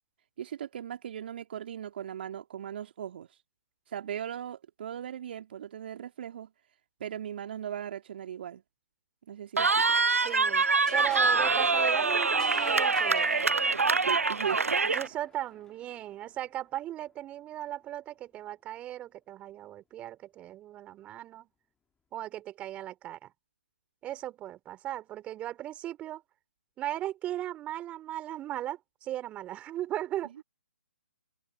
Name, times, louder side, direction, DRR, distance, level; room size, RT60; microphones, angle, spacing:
voice 1, 0.4-3.4 3.9-6.5 7.0-8.6 9.3-10.0 14.0-14.7, right 9 dB, 45° right, 3.1 m, -38 dB
Cheering, 9.6-15.1, right 4 dB, 80° right, 0.8 m, -25 dB
sound 1, 9.9-16.7, left 6 dB, 10° left, 2.7 m, -48 dB
voice 2, 10.1-10.7 10.9-13.5 14.9-21.5 22.1-23.3 24.0-26.2 26.8-30.3, right 13 dB, 15° right, 4.1 m, -37 dB
figure-of-eight pair, 140°, 8 cm